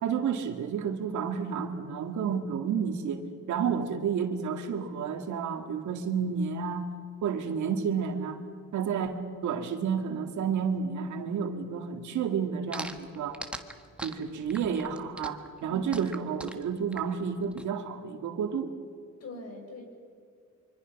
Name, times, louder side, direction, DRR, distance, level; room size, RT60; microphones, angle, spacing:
voice 1, 0.0-6.9 7.2-8.4 8.7-13.4 14.0-18.7, right 6 dB, 75° right, 5 dB, 2.3 m, -31 dB
sound 1, 12.7-17.6, right 1 dB, 5° right, 1.5 m, -41 dB
voice 2, 19.2-19.9, left 1 dB, 55° left, 2 dB, 6.8 m, -42 dB
25.0 x 25.0 x 6.1 m, 2.3 s
cardioid pair, 90°, 30 cm